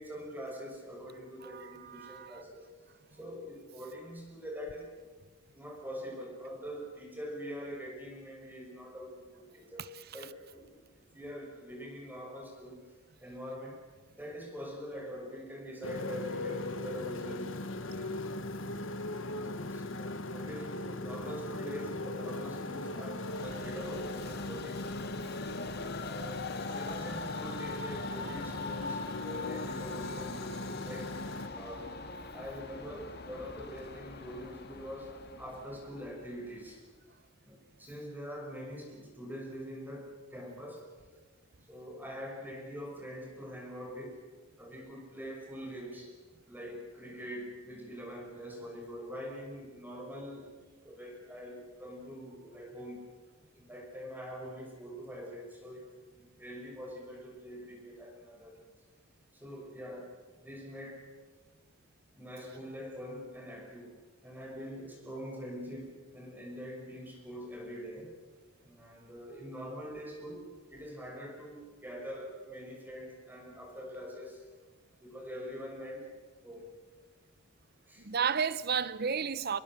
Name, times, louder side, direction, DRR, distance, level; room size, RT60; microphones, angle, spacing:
voice 1, 0.0-2.7 3.1-4.9 5.5-12.8 13.2-13.8 14.1-18.2 19.1-24.9 25.4-31.2 31.5-31.9 32.3-36.8 37.4-40.9 41.7-44.3 44.6-46.1 46.5-50.6 50.8-53.1 53.5-58.7 59.3-60.1 60.4-61.1 62.2-68.2 68.6-74.4 75.0-76.1 76.4-76.7 77.9-78.1, equal, 10° right, 5.9 m, -44 dB
voice 2, 1.4-2.4 78.0-79.6, right 6 dB, 50° right, 0.8 m, -32 dB
Motorcycle, 15.8-31.5, left 2 dB, 75° left, 1.5 m, -39 dB
Train, 23.2-36.7, left 3 dB, 50° left, 2.2 m, -43 dB
26.0 x 22.0 x 7.4 m
head